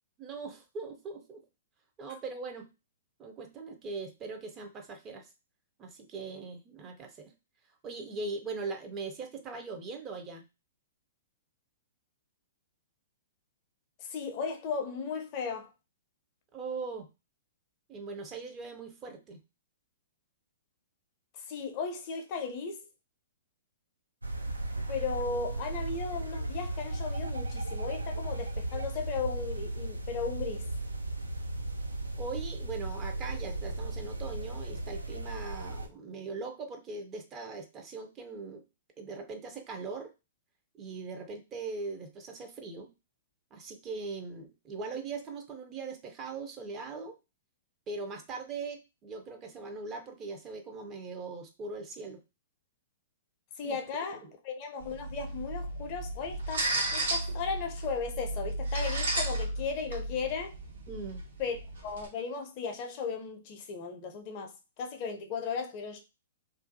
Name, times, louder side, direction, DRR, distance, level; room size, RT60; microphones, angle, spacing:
voice 1, 0.2-1.4 2.0-2.7 3.2-5.3 5.8-7.3 7.8-10.4 16.5-17.1 17.9-19.4 32.2-38.6 39.0-40.1 40.8-42.9 43.5-47.2 47.9-52.2 53.6-53.8 54.1-54.3 60.9-61.2, right 4 dB, 25° right, 0.5 m, -40 dB
voice 2, 14.0-15.7 21.3-22.8 24.9-30.7 53.6-60.5 61.4-61.6 61.8-66.0, left 5 dB, 40° left, 0.5 m, -36 dB
sound 1, 24.2-35.9, right 2 dB, 85° right, 0.3 m, -36 dB
sound 2, 54.8-62.1, right 1 dB, 70° right, 0.8 m, -34 dB
2.4 x 2.2 x 2.5 m
figure-of-eight pair, 110°, 0 cm